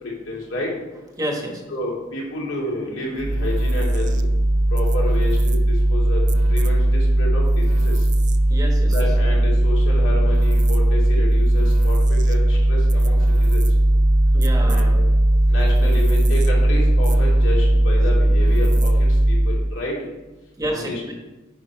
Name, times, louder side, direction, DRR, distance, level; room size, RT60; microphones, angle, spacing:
voice 1, 0.0-0.7 1.7-4.1 4.7-5.6 5.9-7.9 8.9-13.6 14.7-14.9 15.5-19.9 20.7-21.1, left 1 dB, 75° left, -4 dB, 2.6 m, -30 dB
voice 2, 1.2-1.7 8.5-8.9 14.3-14.9 20.6-21.1, equal, 20° right, 1 dB, 1.2 m, -28 dB
sound 1, 3.2-19.7, right 1 dB, 40° right, 0.5 m, -17 dB
9.5 x 5.2 x 4.6 m, 1.1 s
head